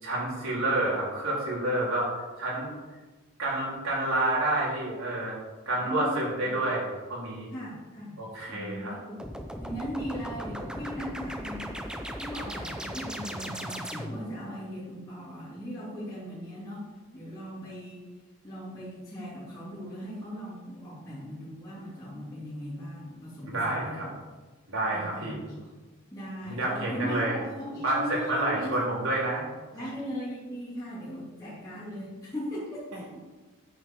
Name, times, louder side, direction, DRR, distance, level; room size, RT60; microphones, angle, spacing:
voice 1, 0.0-2.1 2.4-2.7 3.4-5.4 5.7-7.5 8.2-8.9 23.5-24.0 24.7-25.4 26.5-27.4 27.8-29.5, right 1 dB, 70° right, -5 dB, 4.0 m, -29 dB
voice 2, 5.8-6.6 7.5-8.2 8.5-9.3 9.6-11.8 12.2-16.9 17.1-18.0 18.4-24.2 24.8-25.7 26.1-28.8 29.7-33.2, equal, 15° left, -10 dB, 3.0 m, -38 dB
sound 1, 9.2-14.4, equal, 5° right, 0.7 m, -37 dB
9.7 x 8.6 x 4.8 m, 1.3 s
head